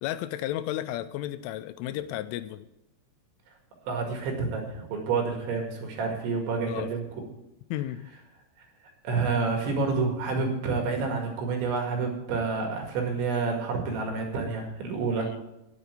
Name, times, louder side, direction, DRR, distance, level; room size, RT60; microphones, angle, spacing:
voice 1, 0.0-2.7 6.6-6.9 7.7-8.1 15.2-15.4, left 13 dB, 85° left, 13 dB, 3.1 m, -33 dB
voice 2, 3.9-7.0 9.0-15.3, right 4 dB, 70° right, 2 dB, 4.3 m, -28 dB
10.0 x 8.2 x 8.1 m, 0.90 s
omnidirectional pair, 5.6 m